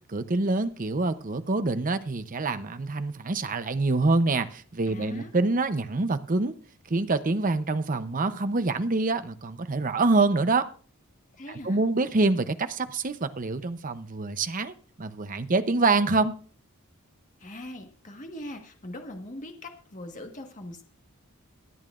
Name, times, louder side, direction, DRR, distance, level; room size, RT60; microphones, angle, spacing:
voice 1, 0.1-6.5 6.9-10.7 11.5-16.3, right 3 dB, 35° right, 0.7 m, -26 dB
voice 2, 4.8-5.3 11.4-11.8 17.4-20.8, left 1 dB, 35° left, 1.5 m, -41 dB
23.5 x 8.8 x 2.5 m
head